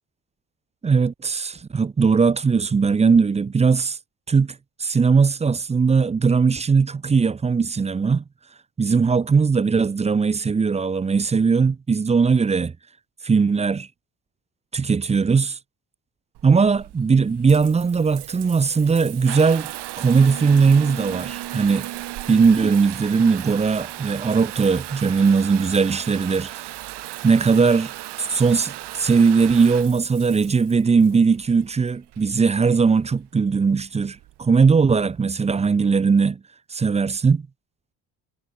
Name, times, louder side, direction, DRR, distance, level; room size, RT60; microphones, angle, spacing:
voice 1, 0.8-4.0 4.3-8.2 8.8-12.7 13.2-13.9 14.7-15.6 16.4-19.7 20.0-21.9 22.3-26.5 27.2-27.9 28.2-36.4 36.7-37.4, right 5 dB, 15° right, 0.6 m, -19 dB
Water tap faucet / Bathtub (filling or washing) / Trickle dribble, 16.3-35.2, right 16 dB, 75° right, 6.1 m, -36 dB
cardioid pair, 140°, 41 cm